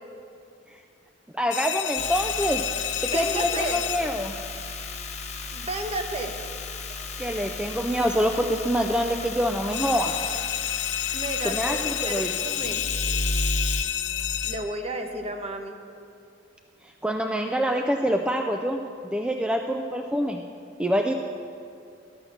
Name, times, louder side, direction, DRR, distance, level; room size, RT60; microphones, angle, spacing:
voice 1, 1.3-2.6 3.0-4.3 7.2-10.1 11.4-12.3 17.0-20.4 20.8-21.1, equal, 5° right, 3 dB, 0.3 m, -26 dB
sound 1, 1.5-4.4 9.7-14.9, left 11 dB, 75° left, 0.5 m, -30 dB
sound 2, 2.0-13.8, left 3 dB, 40° left, 0.8 m, -34 dB
voice 2, 3.1-3.8 5.5-6.3 11.1-12.8 14.4-15.7, right 2 dB, 35° right, 5 dB, 0.8 m, -32 dB
12.5 x 5.6 x 7.2 m, 2.4 s
head